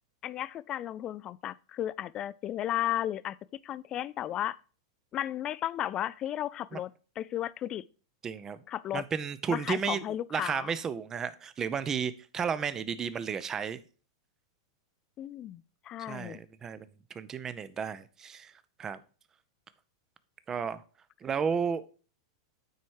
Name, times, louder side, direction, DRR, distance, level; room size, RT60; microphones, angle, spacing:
voice 1, 0.2-4.6 5.1-7.8 8.7-9.1 9.5-10.7 15.2-16.4, left 12 dB, 35° left, 0.3 m, -34 dB
voice 2, 8.2-8.6 8.9-10.0 10.3-13.8 16.1-16.9 17.1-18.5 18.8-19.0 20.5-20.8 21.2-21.9, right 6 dB, 25° right, 0.7 m, -33 dB
9.4 x 4.3 x 4.7 m
hypercardioid pair, 115°, 2 cm